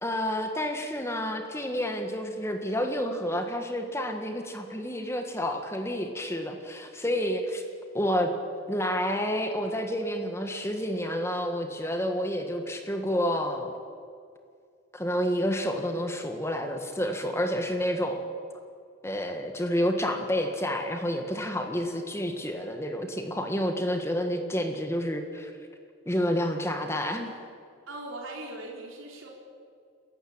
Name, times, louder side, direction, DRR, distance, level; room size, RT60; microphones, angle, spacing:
voice 1, 0.0-7.6 7.9-8.3 8.7-13.7 14.9-18.3 19.0-25.5 26.0-27.3, equal, 15° left, 5 dB, 1.6 m, -29 dB
voice 2, 27.9-29.3, right 2 dB, 90° right, -1 dB, 4.1 m, -39 dB
27.5 x 15.0 x 8.8 m, 2.2 s
head